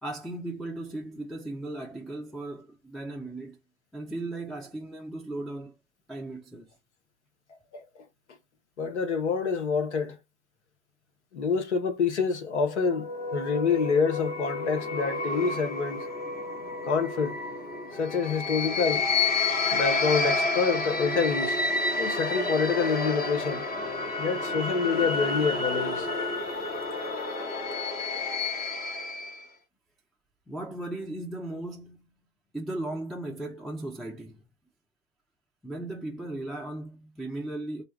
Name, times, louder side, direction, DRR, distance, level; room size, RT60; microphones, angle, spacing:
voice 1, 0.0-3.6 3.9-5.8 6.1-6.7 30.5-32.1 32.5-34.4 35.6-37.8, right 2 dB, ahead, 0.3 m, -36 dB
voice 2, 8.8-10.2 11.3-16.1 16.8-17.4 17.9-19.1 19.7-21.6 22.0-23.7 24.2-26.1, left 5 dB, 85° left, 0.8 m, -27 dB
sound 1, 12.6-29.4, left 3 dB, 25° left, 0.9 m, -30 dB
2.7 x 2.2 x 3.2 m
hypercardioid pair, 90°, 33 cm